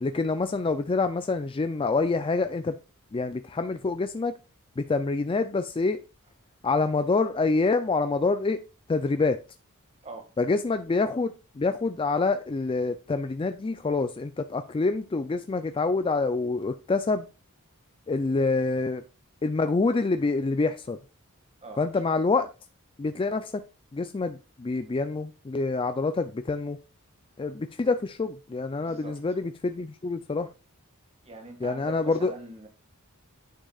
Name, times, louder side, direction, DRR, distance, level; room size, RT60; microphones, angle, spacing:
voice 1, 0.0-2.8 3.1-4.3 4.8-6.0 6.6-8.6 8.9-9.4 10.4-17.3 18.1-19.0 19.4-21.0 21.8-22.5 23.0-23.6 23.9-26.8 27.4-30.5 31.6-32.3, left 3 dB, 25° left, 0.4 m, -26 dB
voice 2, 28.8-29.4 31.2-32.7, right 3 dB, 30° right, 1.9 m, -42 dB
9.5 x 6.3 x 2.4 m
head